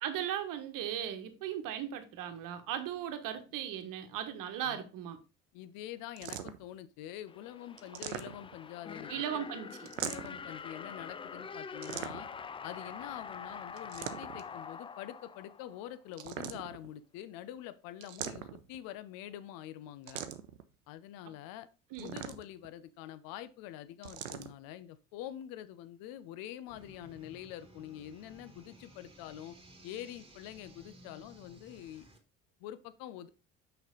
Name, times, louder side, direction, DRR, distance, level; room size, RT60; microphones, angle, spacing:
voice 1, 0.0-5.2 9.1-9.9 21.9-22.2, right 10 dB, 55° right, 1.3 m, -37 dB
voice 2, 5.5-9.5 10.0-12.3 12.6-20.2 20.9-21.7 22.0-29.6 29.8-32.1 32.6-33.3, left 12 dB, 60° left, 0.8 m, -46 dB
sound 1, 6.2-6.7 7.8-8.7 9.8-10.5 11.8-12.5 13.8-14.5 16.1-16.9 18.0-18.8 20.1-20.6 21.9-22.7 24.0-24.5, right 10 dB, 90° right, 0.6 m, -41 dB
sound 2, 7.3-16.1, left 6 dB, 15° left, 0.3 m, -45 dB
sound 3, 26.7-32.2, right 1 dB, 15° right, 2.3 m, -57 dB
6.2 x 5.6 x 3.9 m
hypercardioid pair, 60°, 38 cm